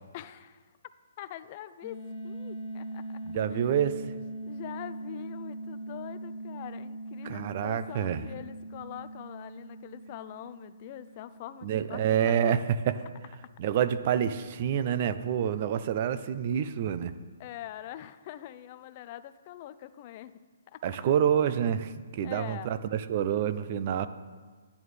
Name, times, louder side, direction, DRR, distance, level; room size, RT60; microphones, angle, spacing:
voice 1, 0.1-0.6 1.2-3.2 3.5-3.7 4.4-12.5 17.4-20.4 20.7-20.8 22.2-22.7, left 12 dB, 35° left, 13 dB, 0.4 m, -43 dB
sound 1, 1.8-12.5, right 1 dB, 20° right, 1.6 m, -41 dB
voice 2, 3.3-4.0 7.2-8.2 11.6-12.6 13.6-17.1 20.8-24.1, right 9 dB, 40° right, 13 dB, 0.4 m, -27 dB
10.5 x 9.2 x 3.3 m, 1.4 s
hypercardioid pair, 155°, 0 cm